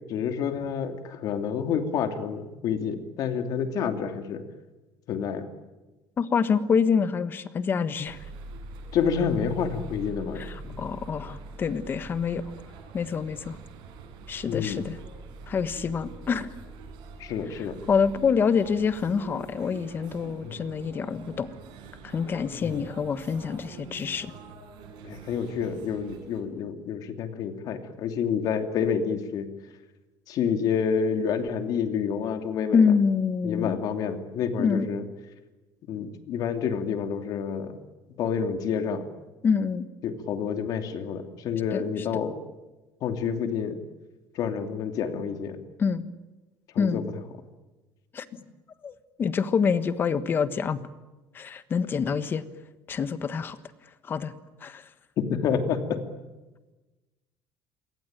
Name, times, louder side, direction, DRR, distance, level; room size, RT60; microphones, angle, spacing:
voice 1, 0.1-4.4 5.1-5.5 8.9-10.8 14.5-14.8 17.2-17.8 20.4-20.5 22.5-22.8 25.0-29.5 30.3-32.9 33.4-35.0 35.9-37.8 38.2-39.1 40.0-42.3 43.0-43.8 44.3-45.6 46.7-47.0 55.2-56.0, left 7 dB, 50° left, 7 dB, 2.9 m, -28 dB
voice 2, 6.2-8.2 10.4-12.4 12.9-13.6 14.3-15.0 15.5-16.5 17.9-21.5 22.0-24.3 32.7-33.8 34.6-34.9 39.4-39.9 41.7-41.8 45.8-46.1 46.8-47.0 48.1-48.3 48.8-50.8 51.3-52.4 52.9-53.6 54.0-54.3 54.6-54.9, left 6 dB, 25° left, 13 dB, 1.4 m, -26 dB
sound 1, 8.1-26.4, right 4 dB, 70° right, 7.5 m, -44 dB
27.5 x 23.5 x 9.1 m, 1.1 s
cardioid pair, 165°, 8 cm